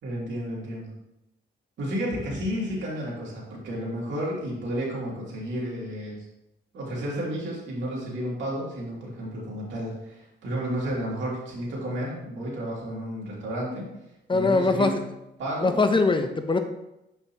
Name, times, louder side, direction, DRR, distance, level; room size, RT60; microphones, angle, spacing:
voice 1, 0.0-0.9 1.8-6.3 6.7-13.8 14.3-15.1 15.4-15.7, equal, 80° right, -4 dB, 2.5 m, -32 dB
voice 2, 14.3-15.0 15.6-16.6, left 3 dB, 25° left, 7 dB, 0.6 m, -22 dB
7.4 x 5.8 x 2.9 m, 0.89 s
cardioid pair, 95°, 19 cm